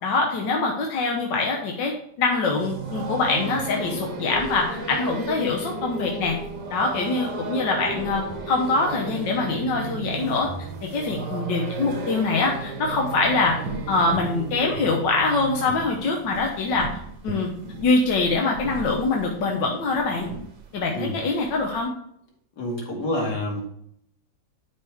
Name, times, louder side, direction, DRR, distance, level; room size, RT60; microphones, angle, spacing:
voice 1, 0.0-1.9 2.2-6.4 6.7-10.5 10.9-13.6 13.9-16.9 17.2-17.5 17.8-20.3 20.7-21.9, left 3 dB, 85° left, 1 dB, 1.7 m, -24 dB
sound 1, 2.6-21.8, right 3 dB, 80° right, 2.0 m, -34 dB
voice 2, 22.6-23.6, left 1 dB, 65° left, -1 dB, 2.7 m, -28 dB
11.5 x 4.8 x 3.5 m, 0.69 s
omnidirectional pair, 1.9 m